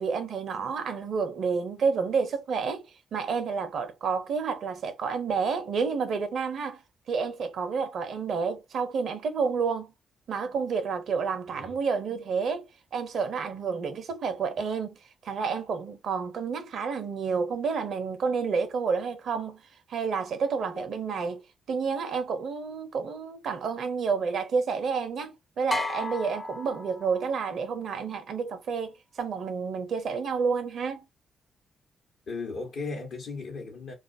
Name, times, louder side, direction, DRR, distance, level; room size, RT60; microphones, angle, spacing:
voice 1, 0.0-2.8 3.1-6.8 7.1-9.9 10.3-12.7 12.9-15.0 15.2-19.6 19.9-21.4 21.7-31.0, right 5 dB, 65° right, 0.5 m, -29 dB
sound 1, 25.7-27.5, left 2 dB, 20° left, 0.5 m, -34 dB
voice 2, 32.3-33.9, left 3 dB, 70° left, 0.8 m, -36 dB
2.3 x 2.1 x 2.5 m
hypercardioid pair, 45°, 0 cm